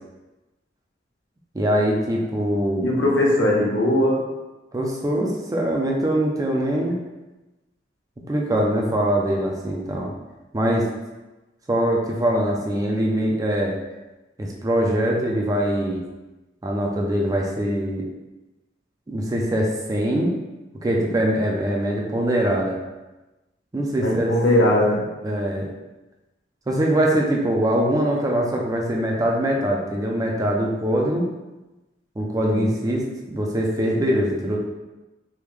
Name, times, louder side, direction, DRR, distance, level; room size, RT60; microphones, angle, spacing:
voice 1, 1.5-2.9 4.7-7.0 8.3-10.1 10.5-10.9 11.7-13.8 14.4-16.0 16.6-18.1 19.1-20.3 20.8-22.8 23.7-24.3 25.2-25.7 26.7-31.3 32.2-34.6, right 1 dB, 20° right, -1 dB, 0.4 m, -22 dB
voice 2, 2.8-4.2 24.0-25.0 32.5-32.7, left 1 dB, 75° left, -3 dB, 0.8 m, -19 dB
3.4 x 2.2 x 3.1 m, 1.1 s
head